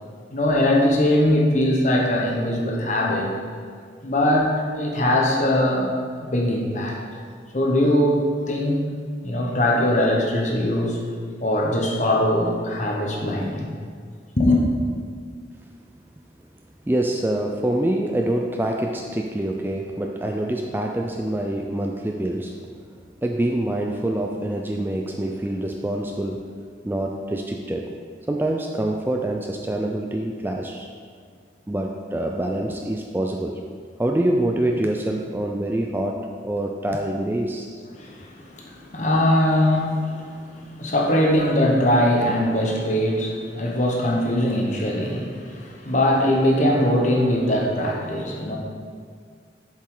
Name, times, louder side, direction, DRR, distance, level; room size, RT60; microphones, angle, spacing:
voice 1, 0.3-3.3 4.0-5.9 6.2-7.0 7.5-8.9 9.2-11.0 11.4-13.7 14.4-14.6 37.9-48.6, left 1 dB, 40° left, -1 dB, 1.2 m, -21 dB
voice 2, 16.9-22.8 23.2-26.5 26.8-27.9 28.3-30.9 31.7-33.6 34.0-37.7, right 1 dB, 10° right, 2 dB, 0.3 m, -25 dB
7.4 x 7.4 x 3.8 m, 2.1 s
head